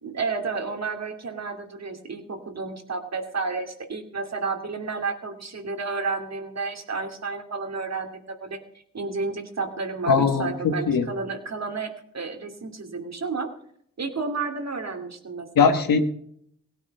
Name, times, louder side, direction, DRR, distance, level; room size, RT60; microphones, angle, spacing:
voice 1, 0.0-8.6 8.9-13.5 14.0-15.8, right 4 dB, 50° right, 5 dB, 2.6 m, -31 dB
voice 2, 10.1-11.1 15.5-16.0, left 5 dB, 80° left, 7 dB, 1.5 m, -20 dB
17.0 x 9.7 x 5.5 m, 0.68 s
cardioid pair, 50°, 33 cm